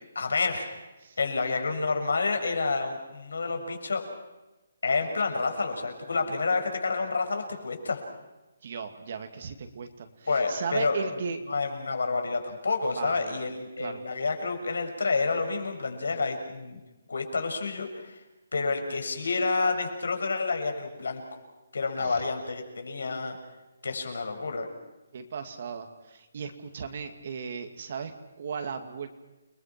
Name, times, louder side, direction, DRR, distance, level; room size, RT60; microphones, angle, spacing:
voice 1, 0.2-0.7 1.2-4.1 4.8-8.0 10.3-11.0 11.5-16.8 17.1-18.2 18.5-21.2 21.7-23.4 23.8-24.7, left 4 dB, 80° left, 5 dB, 6.8 m, -29 dB
voice 2, 8.6-11.4 13.0-14.0 22.0-22.2 25.1-29.1, right 6 dB, 40° right, 6 dB, 2.3 m, -36 dB
30.0 x 22.0 x 6.0 m, 1.1 s
hypercardioid pair, 175°, 0 cm